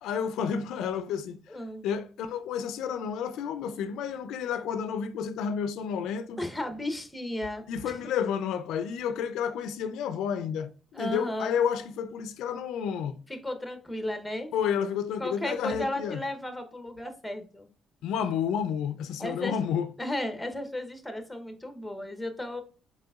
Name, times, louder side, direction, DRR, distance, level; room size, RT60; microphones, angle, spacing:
voice 1, 0.0-1.4 1.8-6.4 7.7-13.2 14.5-16.2 18.0-19.9, left 7 dB, 90° left, 0.4 m, -30 dB
voice 2, 1.5-1.9 6.4-7.9 10.9-11.6 13.3-14.5 15.2-17.7 19.2-19.6 20.0-22.6, left 1 dB, 5° left, 0.8 m, -34 dB
4.0 x 3.8 x 2.3 m
cardioid pair, 90°, 0 cm